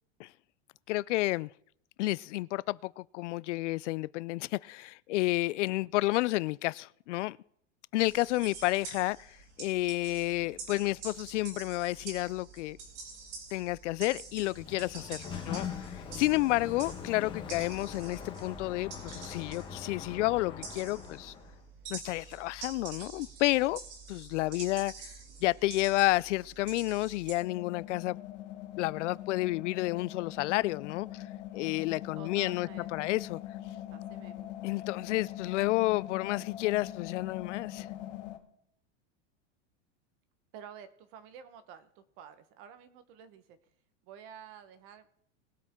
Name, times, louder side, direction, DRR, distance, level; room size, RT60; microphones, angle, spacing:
voice 1, 0.9-1.5 2.0-7.4 7.9-12.8 13.5-21.3 21.9-23.8 24.1-25.1 25.4-28.2 28.8-31.2 31.5-33.4 34.6-37.9, left 19 dB, 80° left, 0.5 m, -31 dB
sound 1, 8.0-27.3, right 4 dB, 85° right, 4.0 m, -47 dB
Sliding door, 14.2-21.6, left 7 dB, 15° left, 1.4 m, -42 dB
sound 2, 27.4-38.4, left 13 dB, 50° left, 2.3 m, -42 dB
voice 2, 32.1-33.2 33.9-34.5 40.5-43.6 44.0-45.1, right 8 dB, 35° right, 1.2 m, -50 dB
21.0 x 8.3 x 3.7 m
supercardioid pair, 170°, 36 cm